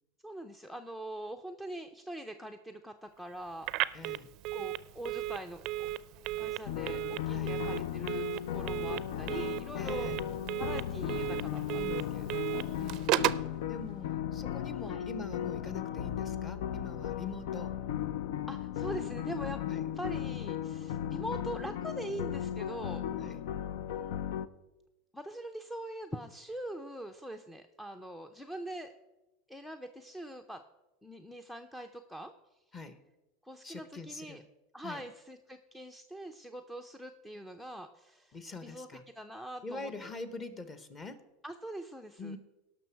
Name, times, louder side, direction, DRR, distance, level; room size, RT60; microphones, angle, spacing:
voice 1, 0.2-3.7 4.5-5.9 6.4-10.1 10.6-12.6 14.8-15.1 18.5-19.7 20.0-23.0 25.1-28.9 29.5-30.6 31.0-32.3 33.4-34.4 34.7-38.4 38.6-38.9 39.2-39.9 41.4-42.4, right 1 dB, 5° left, 8 dB, 0.5 m, -43 dB
Telephone, 3.6-13.5, right 15 dB, 45° right, 0.4 m, -35 dB
voice 2, 3.9-4.3 7.3-7.6 9.8-10.2 11.8-12.2 12.8-13.2 13.7-17.7 19.7-19.9 23.2-23.4 32.7-33.0 33.6-34.4 34.8-35.0 38.3-39.0 39.6-41.3 42.2-42.4, left 3 dB, 20° left, 11 dB, 1.0 m, -44 dB
sound 1, 6.7-24.5, left 10 dB, 75° left, 0.5 m, -36 dB
18.0 x 6.1 x 4.6 m, 1.0 s
supercardioid pair, 145°, 0 cm